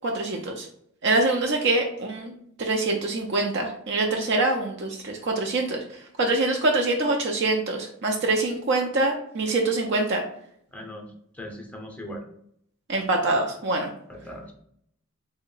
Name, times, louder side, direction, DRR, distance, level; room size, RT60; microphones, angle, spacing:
voice 1, 0.0-0.7 1.0-2.3 2.6-5.8 6.2-10.2 12.9-13.9, right 2 dB, 55° right, 2 dB, 0.5 m, -24 dB
voice 2, 10.7-12.2 14.1-14.5, equal, 5° left, 1 dB, 0.5 m, -39 dB
3.6 x 2.1 x 3.8 m, 0.69 s
head